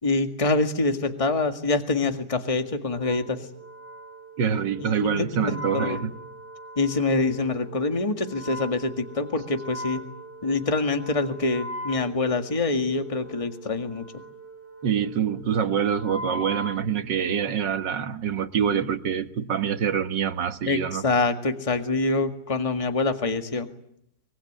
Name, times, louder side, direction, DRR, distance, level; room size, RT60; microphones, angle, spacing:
voice 1, 0.0-3.5 4.8-6.1 6.8-10.0 10.4-14.1 20.7-23.7, left 3 dB, 20° left, 7 dB, 1.8 m, -25 dB
Wind instrument woodwind instrument, 2.9-17.6, equal, 5° right, 5.6 m, -41 dB
voice 2, 4.4-6.2 14.8-21.0, right 8 dB, 85° right, 10 dB, 2.0 m, -25 dB
24.5 x 23.0 x 10.0 m, 0.72 s
omnidirectional pair, 1.9 m